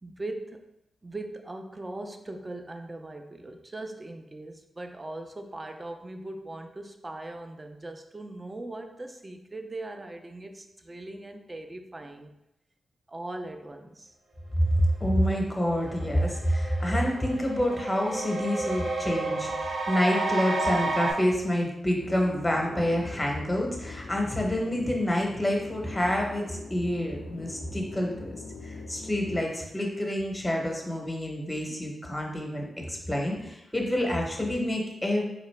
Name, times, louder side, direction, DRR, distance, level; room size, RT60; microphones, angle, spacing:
voice 1, 0.0-0.7 1.0-12.3 13.1-14.1 33.4-33.5, right 2 dB, 20° right, 6 dB, 0.4 m, -40 dB
voice 2, 14.6-28.3 28.6-35.2, equal, 15° left, 0 dB, 0.8 m, -27 dB
sound 1, 15.3-15.4 15.8-21.1, right 3 dB, 80° right, 0.6 m, -31 dB
sound 2, 22.0-29.5, left 3 dB, 70° left, 0.4 m, -43 dB
3.7 x 2.9 x 3.2 m, 0.87 s
wide cardioid pair, 105°, 0 cm